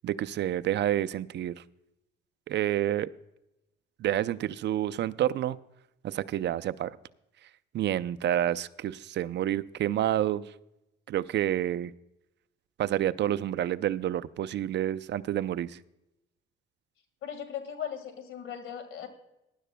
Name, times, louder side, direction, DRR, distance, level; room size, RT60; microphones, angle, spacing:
voice 1, 0.0-1.5 2.5-3.1 4.0-5.6 6.0-6.9 7.7-10.4 11.1-11.9 12.8-15.8, right 12 dB, 60° right, 13 dB, 0.5 m, -29 dB
voice 2, 17.2-19.1, left 9 dB, 85° left, 9 dB, 1.8 m, -38 dB
18.5 x 11.0 x 2.2 m, 0.90 s
cardioid pair, 90°, 20 cm